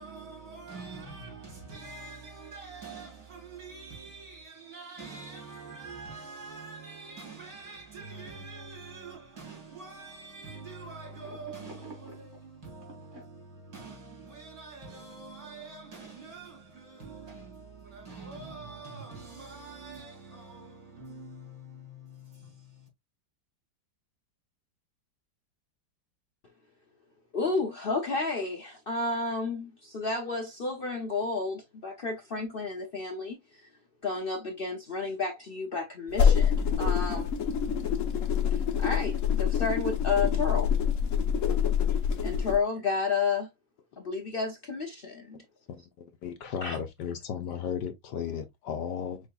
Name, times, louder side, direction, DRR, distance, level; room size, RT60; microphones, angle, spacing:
voice 1, 0.0-22.9, right 3 dB, 50° right, 3.0 m, -45 dB
sound 1, 8.4-9.0 9.9-10.2 11.0-13.2, right 2 dB, 25° right, 2.1 m, -50 dB
voice 2, 27.3-33.4 34.0-37.3 38.8-40.7 42.2-43.5 44.0-45.4 46.6-46.8, left 4 dB, 90° left, 0.4 m, -31 dB
sound 2, 36.1-42.6, left 7 dB, 55° left, 1.0 m, -26 dB
voice 3, 46.2-49.2, left 8 dB, 70° left, 1.2 m, -34 dB
6.3 x 3.5 x 2.3 m
omnidirectional pair, 2.1 m